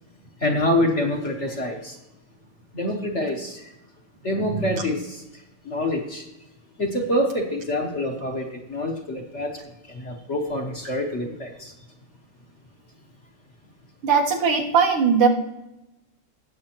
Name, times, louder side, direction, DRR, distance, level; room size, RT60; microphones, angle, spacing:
voice 1, 0.4-1.9 2.7-3.6 4.2-5.2 5.6-6.2 6.8-9.6 9.9-11.7, left 1 dB, 40° left, 1 dB, 1.4 m, -26 dB
voice 2, 14.0-15.3, right 6 dB, 85° right, 0 dB, 2.4 m, -20 dB
19.0 x 7.8 x 3.0 m, 0.95 s
omnidirectional pair, 2.4 m